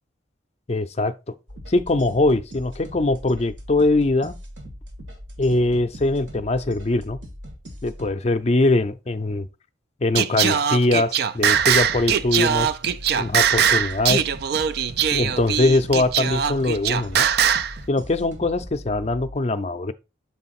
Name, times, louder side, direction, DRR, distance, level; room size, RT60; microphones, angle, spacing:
voice 1, 0.7-1.1 1.7-4.4 5.4-7.2 7.8-9.5 10.0-12.7 13.1-14.2 14.8-17.3 17.9-19.9, left 2 dB, 35° left, 0.5 m, -22 dB
sound 1, 1.5-8.1 11.5-19.4, equal, 80° right, 2.1 m, -40 dB
Singing, 10.2-17.7, right 8 dB, 55° right, 0.3 m, -21 dB
7.0 x 3.9 x 4.2 m
head